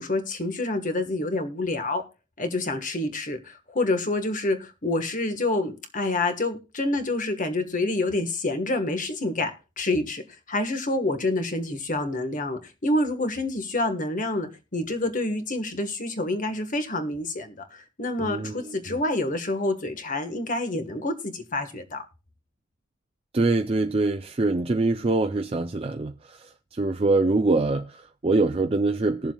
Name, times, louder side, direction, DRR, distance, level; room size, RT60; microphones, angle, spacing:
voice 1, 0.0-2.0 2.4-9.5 9.8-10.2 10.5-22.0, left 2 dB, 40° left, 1.5 m, -27 dB
voice 2, 18.2-19.0 23.3-26.4 26.7-29.3, right 3 dB, 30° right, 0.5 m, -24 dB
20.5 x 7.2 x 2.3 m
head